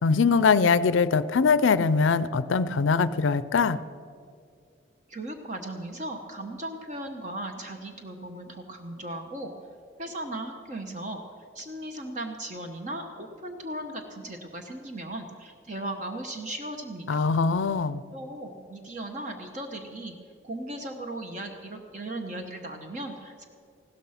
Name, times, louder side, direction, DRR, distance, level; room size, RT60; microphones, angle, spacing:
voice 1, 0.0-3.8 17.1-18.0, left 5 dB, 85° left, 16 dB, 0.5 m, -22 dB
voice 2, 5.1-9.5 10.0-11.2 11.5-17.3 18.1-20.2 20.4-23.5, right 1 dB, 40° right, 4 dB, 1.0 m, -37 dB
15.5 x 13.0 x 5.7 m, 2.3 s
head